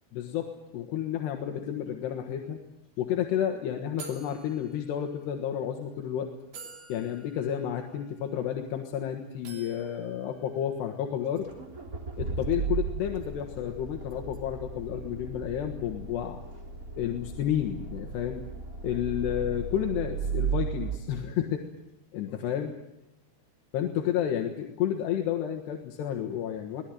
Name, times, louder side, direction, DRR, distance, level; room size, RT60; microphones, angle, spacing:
voice 1, 0.1-2.6 3.0-6.3 6.9-11.5 12.2-16.4 17.0-18.4 18.8-21.7 22.1-22.7 23.7-26.8, left 10 dB, 85° left, 3 dB, 3.6 m, -31 dB
sound 1, 2.6-2.8 3.0-3.2 4.0-5.4 6.0-6.1 6.5-9.0 9.5-11.1, right 4 dB, 65° right, 5.0 m, -49 dB
Accelerating revving vroom, 11.4-21.0, right 5 dB, 25° right, 2.9 m, -35 dB
23.5 x 17.5 x 9.3 m, 0.85 s
omnidirectional pair, 4.8 m